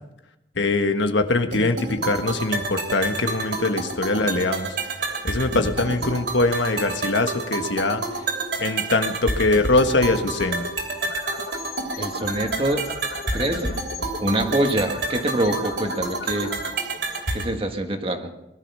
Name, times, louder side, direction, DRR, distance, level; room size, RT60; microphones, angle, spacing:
voice 1, 0.6-4.8 5.2-8.0 8.6-10.7, left 2 dB, 75° left, 6 dB, 1.4 m, -22 dB
sound 1, 1.5-17.5, right 3 dB, 60° right, 3.2 m, -29 dB
voice 2, 5.9-6.2 12.0-12.9 13.3-13.8 14.2-16.5 17.3-18.3, right 1 dB, 30° right, 5 dB, 1.6 m, -25 dB
sound 2, 10.8-17.9, left 4 dB, 55° left, 1.1 m, -38 dB
20.5 x 12.0 x 5.6 m, 0.90 s
head